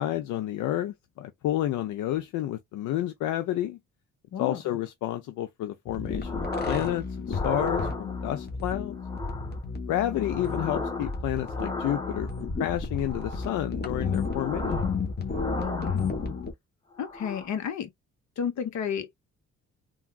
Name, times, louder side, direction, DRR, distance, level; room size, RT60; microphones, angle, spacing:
voice 1, 0.0-3.8 4.4-9.0 9.9-14.7, left 13 dB, 85° left, 0.5 m, -30 dB
voice 2, 4.3-4.6 15.6-16.3 17.0-17.9 18.4-19.1, left 8 dB, 65° left, 1.0 m, -32 dB
sound 1, 5.9-16.5, left 4 dB, 35° left, 1.1 m, -32 dB
sound 2, 6.2-7.0 7.3-8.4 9.0-9.6 10.0-12.5 13.0-13.6 14.0-15.0 15.3-16.5 16.9-17.6, left 2 dB, 15° left, 1.3 m, -36 dB
3.5 x 2.4 x 2.3 m
cardioid pair, 90°, 30 cm